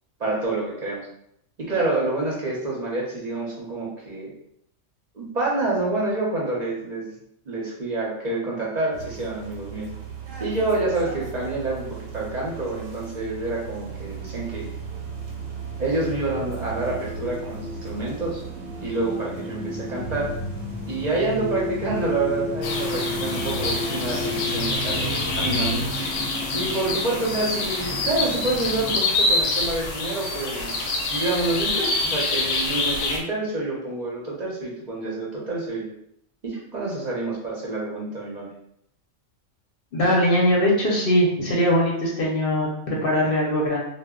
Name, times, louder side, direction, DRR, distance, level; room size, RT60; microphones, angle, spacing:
voice 1, 0.2-1.0 1.6-4.3 5.1-7.1 7.5-9.9 10.4-14.7 15.8-18.4 18.8-20.3 20.9-25.8 26.5-30.8 31.0-35.9 36.4-38.5, right 2 dB, 45° right, -4 dB, 0.6 m, -27 dB
sound 1, 8.9-25.9, right 3 dB, 85° right, 1.0 m, -36 dB
sound 2, 13.8-29.0, left 1 dB, 10° right, 0.8 m, -34 dB
sound 3, 22.6-33.2, left 3 dB, 90° left, 1.0 m, -26 dB
voice 2, 39.9-43.8, equal, 55° left, -3 dB, 0.7 m, -21 dB
2.0 x 2.0 x 3.5 m, 0.74 s
omnidirectional pair, 1.3 m